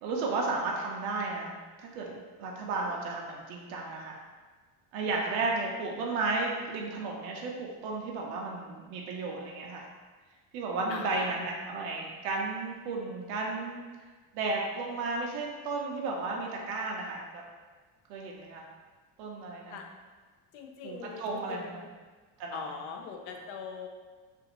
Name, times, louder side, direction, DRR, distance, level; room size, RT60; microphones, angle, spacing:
voice 1, 0.0-1.5 1.8-4.2 4.9-9.9 10.5-13.8 14.3-17.4 18.1-18.7 19.2-19.8 20.8-21.8 22.4-22.8, right 3 dB, 55° right, -1 dB, 0.5 m, -33 dB
voice 2, 10.9-11.3 19.7-19.8 20.5-21.9 22.5-23.9, left 6 dB, 75° left, 3 dB, 0.5 m, -41 dB
2.5 x 2.4 x 2.9 m, 1.4 s
cardioid pair, 175°, 48 cm